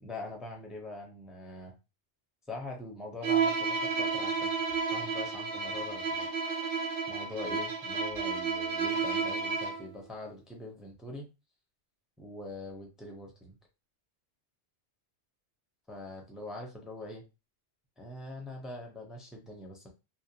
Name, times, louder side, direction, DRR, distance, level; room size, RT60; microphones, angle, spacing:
voice 1, 0.0-1.7 2.5-4.5 4.9-6.3 7.1-11.2 12.2-13.6 15.9-17.2 18.0-19.9, left 2 dB, ahead, 0 dB, 0.4 m, -43 dB
Bowed string instrument, 3.2-9.9, right 5 dB, 85° right, 1.0 m, -31 dB
2.4 x 2.1 x 2.7 m, 0.27 s
omnidirectional pair, 1.2 m